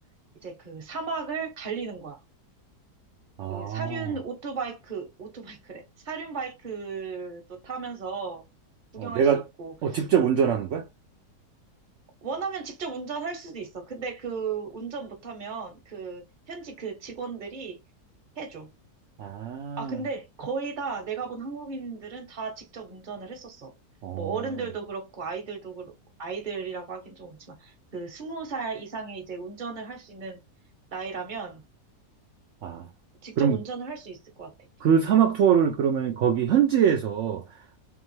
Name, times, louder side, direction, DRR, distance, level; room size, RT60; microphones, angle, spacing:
voice 1, 0.4-2.2 3.5-8.4 8.9-9.3 9.6-10.0 12.2-17.8 18.4-18.7 19.8-23.7 24.2-25.9 26.2-30.4 30.9-31.6 33.2-34.7, right 5 dB, 35° right, 1.0 m, -35 dB
voice 2, 3.4-4.1 9.0-9.5 9.8-10.9 19.2-20.0 24.0-24.5 32.6-32.9 33.4-33.6 34.8-37.6, right 8 dB, 65° right, 0.8 m, -23 dB
3.7 x 3.2 x 3.2 m
omnidirectional pair, 1.8 m